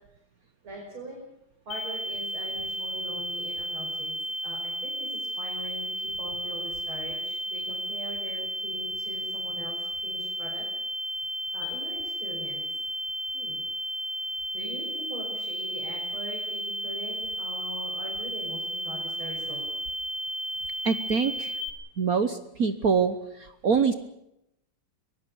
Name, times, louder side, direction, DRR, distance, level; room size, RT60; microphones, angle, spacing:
voice 1, 0.6-1.2 1.7-4.1 4.4-10.6 11.5-12.7 13.3-13.6 14.5-19.6 22.0-22.1, equal, 80° right, -2 dB, 6.8 m, -42 dB
sound 1, 1.7-21.7, equal, 60° left, 3.1 m, -33 dB
voice 2, 20.8-21.5 22.0-23.1 23.4-23.9, right 5 dB, 50° right, 10 dB, 1.4 m, -24 dB
24.0 x 20.5 x 7.1 m, 0.82 s
omnidirectional pair, 2.3 m